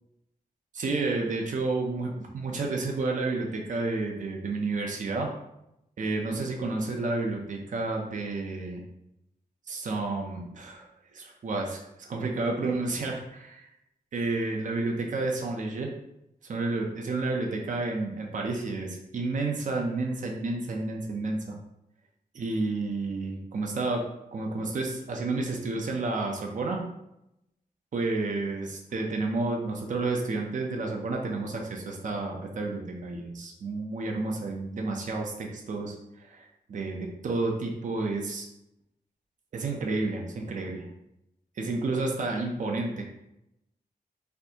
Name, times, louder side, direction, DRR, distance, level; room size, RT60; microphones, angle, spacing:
voice 1, 0.7-5.3 6.0-8.8 9.7-10.9 11.1-13.7 14.1-15.9 16.4-21.6 22.3-24.0 24.3-26.8 27.9-38.5 39.5-40.9 41.6-43.0, right 3 dB, 55° right, 1 dB, 0.5 m, -30 dB
4.3 x 2.6 x 2.8 m, 0.84 s
wide cardioid pair, 170°, 15 cm